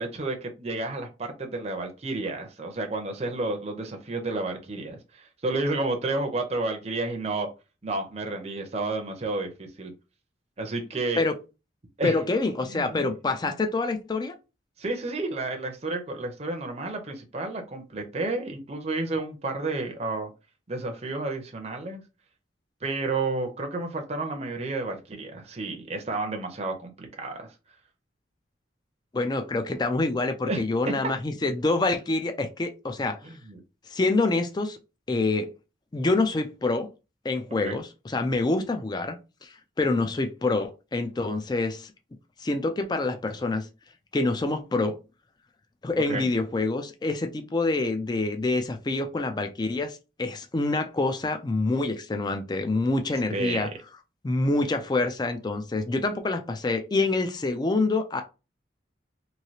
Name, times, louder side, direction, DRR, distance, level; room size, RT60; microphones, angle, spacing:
voice 1, 0.0-7.5 7.8-9.9 10.6-11.2 12.0-12.2 12.7-13.1 14.8-20.3 20.7-22.0 22.8-27.5 30.4-30.6 33.2-33.6 37.6-37.8 45.9-46.3 53.3-53.8, right 2 dB, 35° right, 0.6 m, -31 dB
voice 2, 12.0-14.3 29.1-33.2 33.9-34.8 35.1-35.5 35.9-36.9 37.2-41.9 42.4-43.7 44.1-44.9 45.8-53.7 54.2-58.2, left 2 dB, 25° left, 0.4 m, -26 dB
3.1 x 2.7 x 2.7 m
head